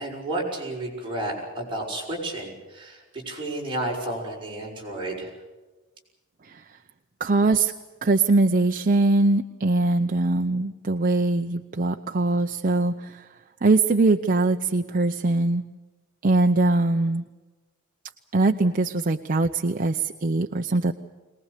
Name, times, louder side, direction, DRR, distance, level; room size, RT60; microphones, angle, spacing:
voice 1, 0.0-5.3, right 1 dB, 25° right, -2 dB, 6.1 m, -31 dB
voice 2, 7.2-7.7 8.0-13.2 13.6-15.6 16.2-17.2 18.3-20.9, right 2 dB, 40° right, 5 dB, 0.7 m, -22 dB
22.5 x 20.0 x 8.3 m, 1.2 s
head